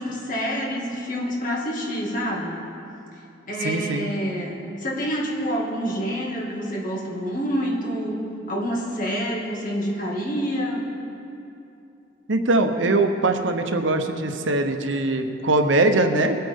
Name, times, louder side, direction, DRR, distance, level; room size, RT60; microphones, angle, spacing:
voice 1, 0.0-2.6 3.5-8.2 8.5-10.9, equal, 45° left, -3 dB, 2.2 m, -27 dB
voice 2, 3.6-4.1 12.3-16.3, right 2 dB, 85° right, 6 dB, 0.9 m, -21 dB
21.0 x 9.0 x 3.7 m, 2.7 s
head